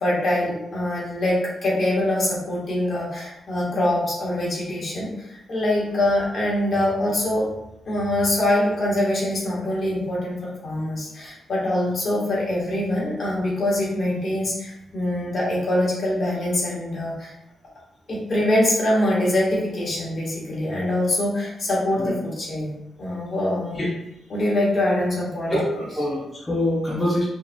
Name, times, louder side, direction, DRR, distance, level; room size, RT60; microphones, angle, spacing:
voice 1, 0.0-5.1 5.5-7.4 7.9-17.3 18.1-22.7 23.0-23.8 24.3-25.5, left 1 dB, 40° left, -5 dB, 1.4 m, -24 dB
voice 2, 25.5-27.2, left 1 dB, 10° left, -7 dB, 0.8 m, -24 dB
5.0 x 2.8 x 2.3 m, 0.88 s
wide cardioid pair, 145°, 0 cm